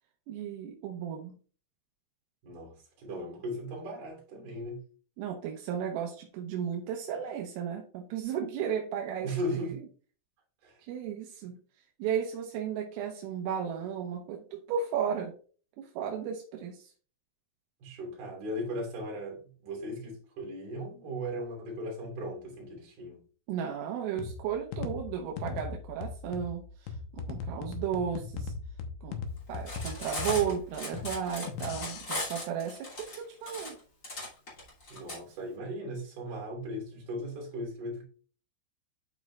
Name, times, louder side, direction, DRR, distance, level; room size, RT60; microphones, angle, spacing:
voice 1, 0.3-1.4 5.2-9.8 10.8-11.6 12.0-15.3 15.8-16.9 23.5-28.5 29.0-33.8, right 8 dB, 80° right, 3.5 m, -34 dB
voice 2, 2.4-4.8 9.2-9.7 10.6-10.7 17.8-23.2 34.9-38.1, equal, 50° right, 4.6 m, -37 dB
sound 1, 24.2-32.0, left 5 dB, 75° left, 2.7 m, -39 dB
Cutlery silverware, 29.5-35.2, left 2 dB, 30° left, 1.5 m, -38 dB
11.5 x 5.1 x 2.4 m
omnidirectional pair, 5.9 m